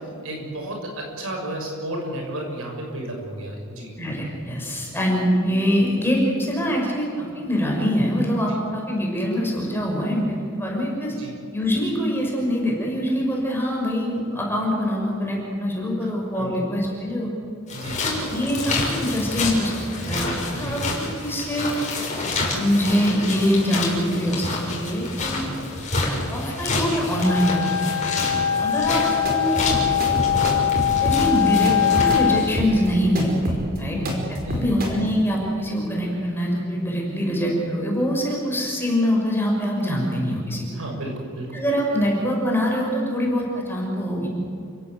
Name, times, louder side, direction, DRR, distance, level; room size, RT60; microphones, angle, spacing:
voice 1, 0.2-3.9 11.2-11.3 16.0-16.1 16.3-16.6 17.7-18.1 20.5-20.8 25.3-25.5 28.2-28.4 33.9-34.7 40.7-41.5, right 1 dB, 65° right, 1 dB, 6.6 m, -33 dB
voice 2, 4.0-11.1 11.5-17.3 18.0-19.7 20.0-21.7 22.5-25.4 26.3-27.7 28.6-29.6 31.0-34.0 34.5-40.7 41.5-44.3, equal, 10° left, -2 dB, 6.3 m, -24 dB
sound 1, 17.7-32.5, left 2 dB, 35° left, 6.3 m, -28 dB
Wind instrument woodwind instrument, 27.2-32.5, left 10 dB, 70° left, 2.1 m, -22 dB
sound 2, 29.0-34.9, equal, 45° right, 5.1 m, -28 dB
29.5 x 17.0 x 8.1 m, 2.5 s
head